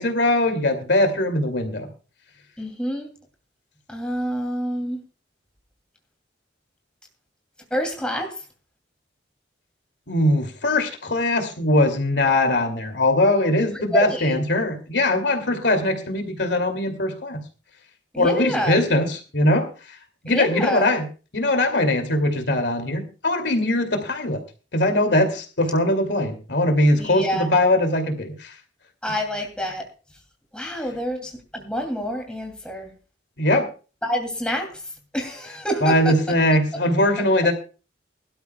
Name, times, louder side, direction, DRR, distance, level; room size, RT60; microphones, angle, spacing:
voice 1, 0.0-1.9 10.1-17.4 18.2-19.7 20.2-21.1 21.3-24.4 24.7-28.5 33.4-33.7 35.8-37.5, left 1 dB, 65° left, 5 dB, 2.6 m, -21 dB
voice 2, 2.6-3.1 3.9-5.0 7.7-8.4 13.9-14.4 18.1-18.8 20.3-20.9 27.0-27.5 29.0-29.9 30.5-32.9 34.0-34.8 35.1-36.1, equal, 5° left, 2 dB, 2.7 m, -27 dB
22.0 x 12.5 x 2.3 m, 0.35 s
head